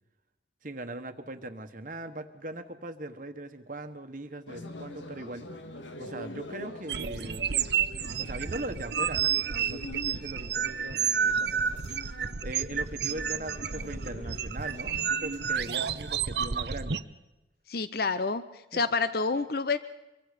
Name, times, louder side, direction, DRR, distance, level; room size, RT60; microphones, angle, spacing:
voice 1, 0.6-5.5 6.0-7.5 8.2-11.8 12.4-17.0 18.7-18.8, right 1 dB, 45° right, 8 dB, 1.3 m, -40 dB
sound 1, 4.5-16.2, left 1 dB, 80° left, 1.8 m, -45 dB
sound 2, 6.9-17.0, right 7 dB, 60° right, 0.7 m, -30 dB
voice 2, 17.7-19.8, left 4 dB, 55° left, 12 dB, 0.8 m, -28 dB
25.5 x 24.0 x 5.2 m, 1.0 s
head